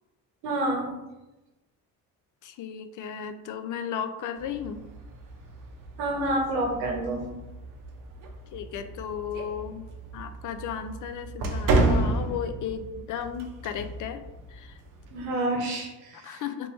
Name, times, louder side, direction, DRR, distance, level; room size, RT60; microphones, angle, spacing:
voice 1, 0.4-0.9 6.0-7.3 15.1-16.4, right 1 dB, 90° right, 1 dB, 0.9 m, -28 dB
voice 2, 2.4-4.8 8.5-9.8 10.1-14.2 14.5-14.8 16.1-16.7, left 8 dB, 55° left, 9 dB, 0.5 m, -35 dB
sound 1, 4.4-15.2, right 2 dB, 55° right, 0.7 m, -32 dB
3.4 x 2.9 x 3.1 m, 1.0 s
supercardioid pair, 65°, 39 cm